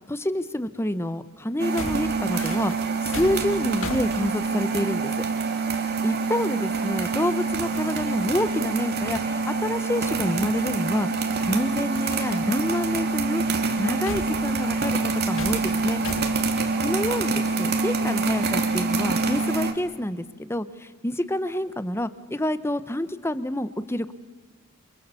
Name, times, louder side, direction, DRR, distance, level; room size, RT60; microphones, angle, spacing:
voice 1, 0.1-2.7 3.0-5.1 6.0-11.1 11.5-13.4 13.8-16.0 16.8-24.1, left 1 dB, 10° left, 13 dB, 1.0 m, -28 dB
sound 1, 1.6-5.0 6.9-7.0 7.3-7.8 8.0-8.4 8.8-8.9 9.2-9.4 10.5-10.6 12.0-12.1 13.7-16.6, left 2 dB, 65° left, 2.0 m, -37 dB
sound 2, 1.6-19.7, right 3 dB, 50° right, 2.6 m, -26 dB
29.0 x 27.0 x 7.0 m, 1.4 s
head